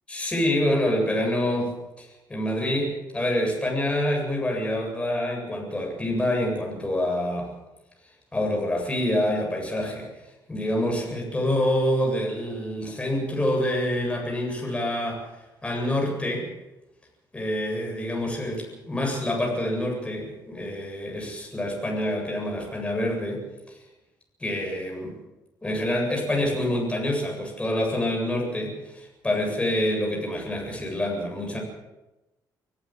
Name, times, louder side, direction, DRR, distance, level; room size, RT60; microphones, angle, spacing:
voice 1, 0.1-7.5 8.3-10.1 10.5-15.3 15.6-16.5 17.3-23.8 24.4-25.2 25.6-31.6, left 1 dB, 15° left, 0 dB, 7.9 m, -27 dB
24.5 x 15.0 x 7.6 m, 1.0 s
cardioid pair, 110°, 8 cm